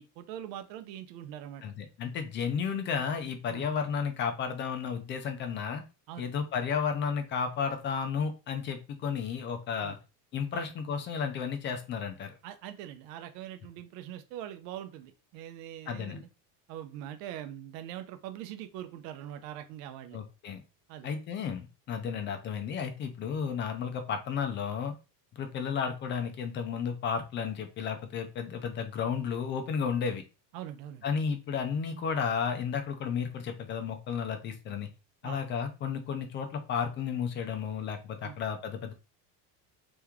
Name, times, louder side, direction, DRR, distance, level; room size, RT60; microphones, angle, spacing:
voice 1, 0.0-1.6 3.5-3.7 6.1-6.3 9.8-10.0 10.5-10.7 12.4-16.3 16.7-20.2 20.9-21.1 30.5-31.0 35.2-35.4 38.2-38.4, right 11 dB, 80° right, 9 dB, 0.8 m, -42 dB
voice 2, 1.6-5.8 6.2-10.0 10.3-12.3 15.9-16.2 20.1-20.6 21.0-24.9 25.3-30.2 31.0-34.9 35.2-38.9, left 6 dB, 25° left, 6 dB, 0.4 m, -33 dB
3.4 x 3.1 x 3.5 m, 0.30 s
cardioid pair, 160°, 49 cm